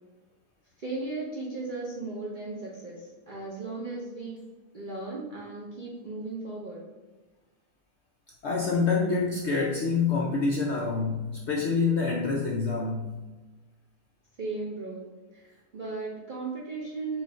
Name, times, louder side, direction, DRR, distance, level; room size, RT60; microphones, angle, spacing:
voice 1, 0.8-4.4 4.7-6.8 14.4-17.2, right 3 dB, 50° right, -4 dB, 0.6 m, -36 dB
voice 2, 8.4-13.2, left 4 dB, 70° left, -1 dB, 0.6 m, -26 dB
4.7 x 2.4 x 4.3 m, 1.2 s
omnidirectional pair, 1.6 m